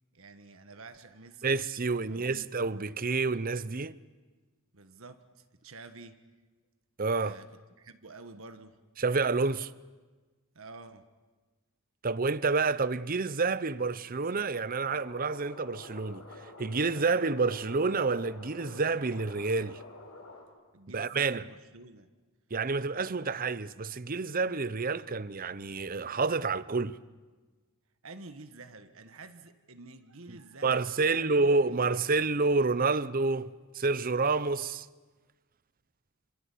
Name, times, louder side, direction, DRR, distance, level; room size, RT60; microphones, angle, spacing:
voice 1, 0.1-1.6 2.1-2.5 4.7-6.2 7.2-8.8 10.5-11.0 20.7-22.1 28.0-31.9, right 3 dB, 70° right, 1.5 m, -49 dB
voice 2, 1.4-4.0 7.0-7.4 9.0-9.7 12.0-16.2 16.6-19.8 20.9-21.4 22.5-27.0 30.6-34.9, right 4 dB, 40° right, 0.8 m, -29 dB
sound 1, 14.8-20.4, left 2 dB, 80° left, 7.7 m, -48 dB
27.0 x 26.5 x 8.4 m
head